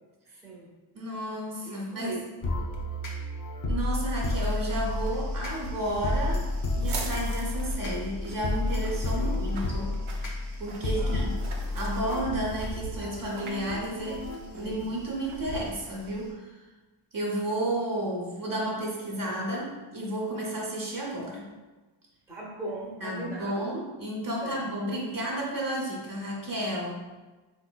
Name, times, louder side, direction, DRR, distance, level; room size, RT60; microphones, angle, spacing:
voice 1, 0.3-0.7 1.6-2.4 9.1-9.5 10.9-11.3 14.6-14.9 22.3-23.7 24.4-24.6, right 2 dB, 5° right, -5 dB, 0.6 m, -39 dB
voice 2, 0.9-2.1 3.7-6.5 6.7-9.9 10.6-11.3 11.7-14.2 14.5-16.6 17.1-21.4 23.0-27.0, right 1 dB, 45° right, -3 dB, 0.7 m, -32 dB
sound 1, 2.4-14.6, left 2 dB, 40° left, 0.6 m, -31 dB
sound 2, 4.2-16.3, right 2 dB, 90° right, 0.6 m, -40 dB
3.6 x 2.9 x 2.2 m, 1.2 s
wide cardioid pair, 135°, 48 cm